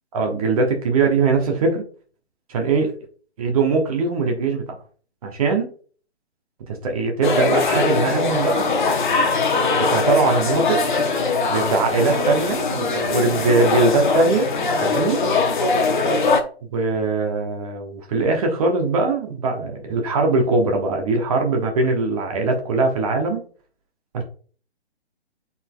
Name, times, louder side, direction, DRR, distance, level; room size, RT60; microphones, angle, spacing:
voice 1, 0.1-1.8 2.5-2.9 3.4-4.7 5.2-5.7 6.7-8.6 9.8-10.8 11.5-14.5 14.8-15.2 16.7-23.4 24.1-24.2, right 3 dB, 35° right, 2 dB, 1.2 m, -21 dB
Hip Mediterranean Restaurant Ambience, 7.2-16.4, left 3 dB, 45° left, 0.9 m, -21 dB
10.5 x 4.1 x 2.3 m, 0.43 s
figure-of-eight pair, 135°, 33 cm